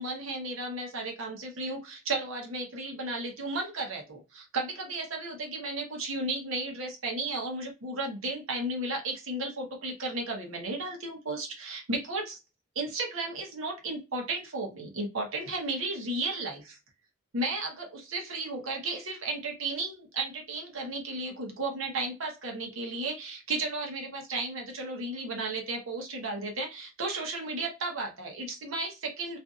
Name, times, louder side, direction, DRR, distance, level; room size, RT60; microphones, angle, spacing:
voice 1, 0.0-12.4 12.7-16.8 17.3-29.4, right 2 dB, 85° right, 1 dB, 0.8 m, -34 dB
2.5 x 2.5 x 2.3 m, 0.28 s
head